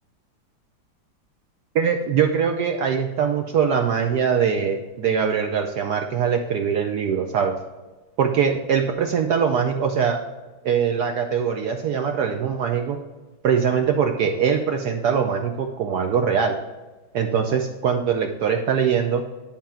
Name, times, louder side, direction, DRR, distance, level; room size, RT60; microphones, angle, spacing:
voice 1, 1.7-7.6 8.2-10.2 10.6-13.0 13.4-16.6 17.1-19.2, right 7 dB, 70° right, 4 dB, 1.0 m, -22 dB
10.5 x 3.7 x 4.3 m, 1.2 s
omnidirectional pair, 2.2 m